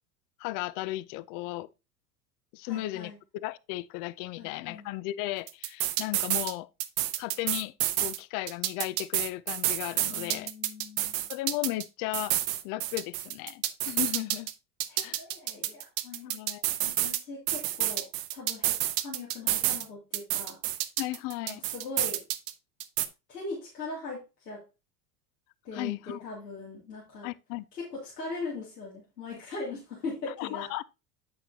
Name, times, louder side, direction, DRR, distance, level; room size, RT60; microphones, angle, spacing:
voice 1, 0.4-1.7 2.5-6.7 7.2-7.7 8.0-10.5 11.3-12.4 12.6-14.5 15.0-15.2 16.2-16.6 21.0-21.6 25.7-26.2 27.2-27.6 30.4-30.8, left 17 dB, 45° left, 0.5 m, -35 dB
voice 2, 2.6-3.2 4.4-4.9 10.1-11.3 14.9-16.3 16.8-20.6 21.4-22.2 23.3-24.6 25.6-27.3 27.7-30.7, left 3 dB, 90° left, 2.8 m, -40 dB
sound 1, 5.5-6.5 6.8-8.2 8.5-11.8 12.1-14.5 14.8-17.2 17.5-19.8 20.1-22.5 22.8-23.1, right 14 dB, 60° right, 0.9 m, -29 dB
8.2 x 6.3 x 2.8 m
hypercardioid pair, 85°, 47 cm